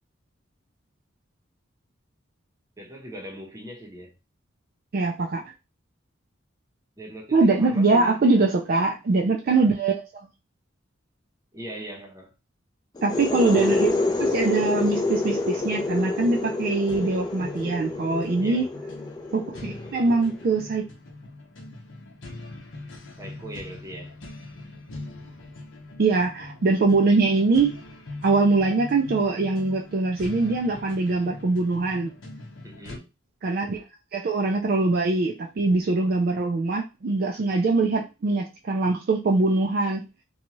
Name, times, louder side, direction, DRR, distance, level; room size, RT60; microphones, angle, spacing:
voice 1, 2.8-4.1 7.0-8.2 9.5-9.7 11.5-12.3 18.4-18.7 23.2-24.2 32.6-33.1, right 1 dB, 15° right, 0.7 m, -40 dB
voice 2, 4.9-5.4 7.3-10.3 13.0-18.7 19.3-20.8 26.0-27.7 28.2-32.1 33.4-33.8 34.1-40.0, right 3 dB, 50° right, 0.4 m, -23 dB
sound 1, 13.0-20.5, left 3 dB, 20° left, 0.4 m, -28 dB
sound 2, 14.6-33.0, left 2 dB, 70° left, 0.7 m, -42 dB
2.7 x 2.3 x 2.9 m
head